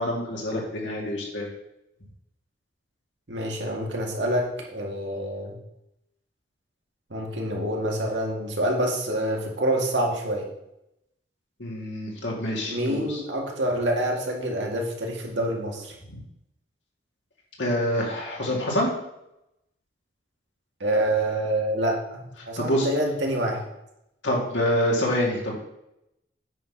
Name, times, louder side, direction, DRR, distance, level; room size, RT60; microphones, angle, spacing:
voice 1, 0.0-1.5 11.6-13.2 16.1-16.2 17.6-18.9 22.6-22.9 24.2-25.5, equal, 80° left, -2 dB, 2.6 m, -26 dB
voice 2, 3.3-5.5 7.1-10.5 12.7-15.9 20.8-23.6, right 1 dB, 80° right, 0 dB, 2.0 m, -27 dB
9.0 x 4.2 x 6.0 m, 0.84 s
head